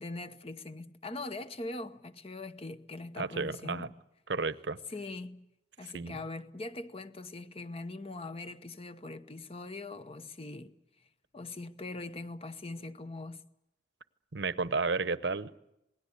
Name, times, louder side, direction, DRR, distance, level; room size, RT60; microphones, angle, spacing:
voice 1, 0.0-3.9 4.9-5.5 5.8-10.7 11.3-13.4, left 2 dB, 30° left, 0.9 m, -42 dB
voice 2, 3.2-3.9 4.3-4.8 5.9-6.1 14.3-15.6, right 4 dB, 65° right, 0.8 m, -32 dB
27.5 x 19.5 x 8.3 m
head